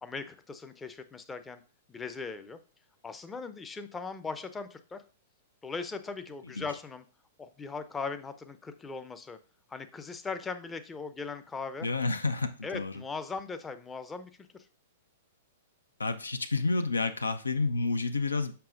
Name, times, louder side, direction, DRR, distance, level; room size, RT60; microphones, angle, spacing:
voice 1, 0.0-1.6 1.9-2.6 3.0-5.0 5.6-7.0 7.4-9.4 9.7-11.9 12.6-14.3, left 4 dB, 15° left, 0.6 m, -39 dB
voice 2, 11.8-13.0 16.0-18.5, left 3 dB, 80° left, 0.6 m, -30 dB
6.8 x 5.5 x 2.5 m
figure-of-eight pair, 105°, 0 cm